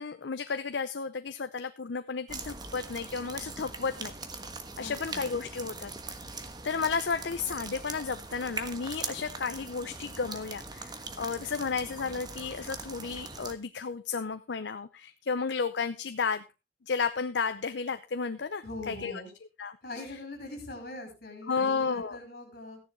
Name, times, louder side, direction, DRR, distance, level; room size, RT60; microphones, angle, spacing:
voice 1, 0.0-4.1 4.8-5.9 6.6-16.5 16.9-19.1 19.6-20.0 21.5-22.2, left 5 dB, 80° left, 10 dB, 0.7 m, -33 dB
sound 1, 2.3-13.5, right 3 dB, 25° right, 1.3 m, -41 dB
voice 2, 4.8-5.3 18.6-19.3 19.8-22.8, left 2 dB, 55° left, 3 dB, 5.1 m, -42 dB
14.5 x 10.0 x 3.6 m, 0.27 s
head